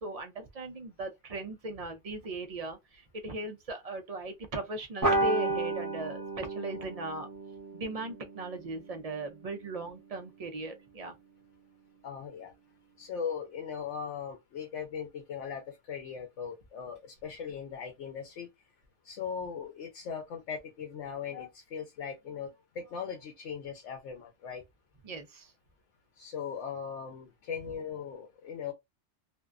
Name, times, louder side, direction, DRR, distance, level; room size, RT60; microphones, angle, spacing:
voice 1, 0.0-7.3 7.7-11.1 25.0-25.5, right 2 dB, 50° right, 0.4 m, -38 dB
sound 1, 5.0-9.9, right 2 dB, 20° right, 0.8 m, -33 dB
voice 2, 12.0-12.5 13.0-18.5 19.0-24.6 26.2-28.7, left 7 dB, 85° left, 1.0 m, -39 dB
2.6 x 2.1 x 2.3 m
omnidirectional pair, 1.2 m